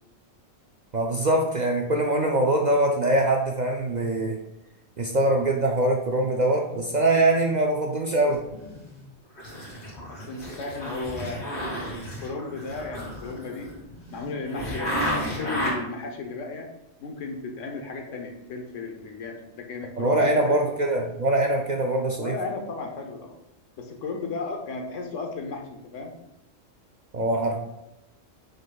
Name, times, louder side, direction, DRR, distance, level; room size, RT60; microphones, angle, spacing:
voice 1, 0.9-4.4 5.0-8.4 20.0-22.3 27.1-27.6, right 1 dB, 50° right, 1 dB, 0.5 m, -23 dB
sound 1, 8.3-9.1 9.4-15.7, equal, 55° left, 2.6 m, -33 dB
voice 2, 10.1-13.8 14.1-16.7 17.0-20.6 22.2-23.4 23.8-26.2, left 3 dB, 75° left, 3 dB, 1.2 m, -35 dB
8.0 x 5.1 x 2.3 m, 0.88 s
omnidirectional pair, 1.3 m